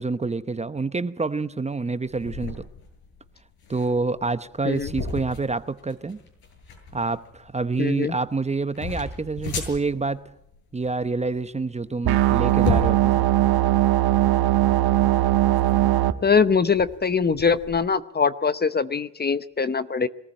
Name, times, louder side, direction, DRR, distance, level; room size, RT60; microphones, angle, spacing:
voice 1, 0.0-2.6 3.7-6.2 6.9-10.2 10.7-13.2 20.0-20.1, right 3 dB, 15° right, 13 dB, 0.9 m, -27 dB
sound 1, 2.1-17.8, left 4 dB, 65° left, 8.0 m, -36 dB
voice 2, 7.8-8.1 16.2-20.1, left 5 dB, 25° left, 14 dB, 0.8 m, -22 dB
sound 2, 12.0-16.1, right 14 dB, 70° right, 1.4 m, -19 dB
23.0 x 14.5 x 8.9 m, 0.81 s
cardioid pair, 90°, 39 cm